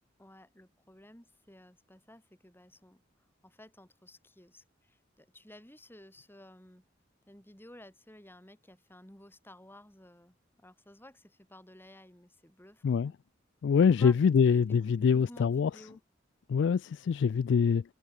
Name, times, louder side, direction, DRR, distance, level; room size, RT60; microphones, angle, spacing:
voice 1, 0.2-3.0 3.4-6.8 7.3-13.1 14.0-14.1 14.5-16.0, left 1 dB, 10° left, 4.0 m, -54 dB
voice 2, 13.6-15.7 16.5-17.8, left 6 dB, 65° left, 0.3 m, -24 dB
head